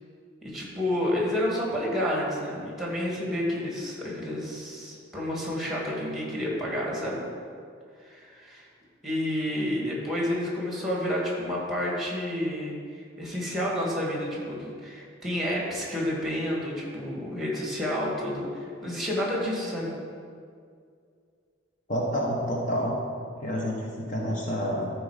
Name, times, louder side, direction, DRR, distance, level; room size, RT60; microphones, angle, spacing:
voice 1, 0.4-7.3 8.0-8.6 9.0-19.9, left 1 dB, ahead, -4 dB, 2.1 m, -30 dB
voice 2, 21.9-23.0 23.4-24.9, equal, 45° left, -2 dB, 1.1 m, -28 dB
13.5 x 4.6 x 5.0 m, 2.3 s
head